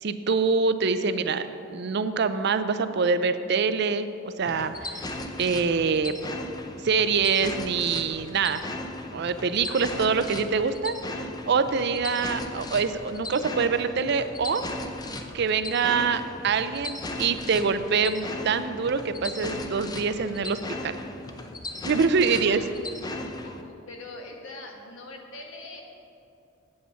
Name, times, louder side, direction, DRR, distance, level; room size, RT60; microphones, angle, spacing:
voice 1, 0.0-4.1 4.4-5.0 5.4-6.1 6.8-8.7 9.1-14.6 15.3-21.0 21.8-22.6, right 5 dB, 55° right, 11 dB, 0.5 m, -25 dB
sound 1, 4.4-23.6, left 2 dB, 20° left, 0.6 m, -37 dB
voice 2, 9.7-10.3 22.3-22.7 23.4-25.8, left 2 dB, 90° left, 1 dB, 1.5 m, -43 dB
8.7 x 8.4 x 5.7 m, 2.8 s
head